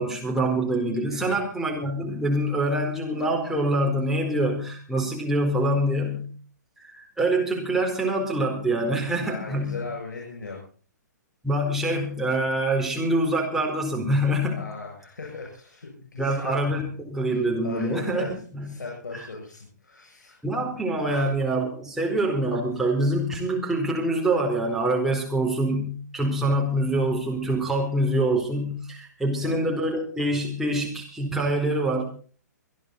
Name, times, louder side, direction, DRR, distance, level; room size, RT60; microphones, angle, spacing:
voice 1, 0.0-6.3 6.8-9.8 11.4-14.7 16.2-18.7 19.1-19.3 20.4-32.0, right 1 dB, 5° right, -1 dB, 4.5 m, -25 dB
voice 2, 1.0-1.4 9.1-10.6 14.5-16.5 17.2-18.3 18.6-20.4 21.0-21.3 29.3-29.7, left 4 dB, 70° left, -2 dB, 7.6 m, -38 dB
25.5 x 10.5 x 4.2 m, 0.42 s
figure-of-eight pair, 120°, 10 cm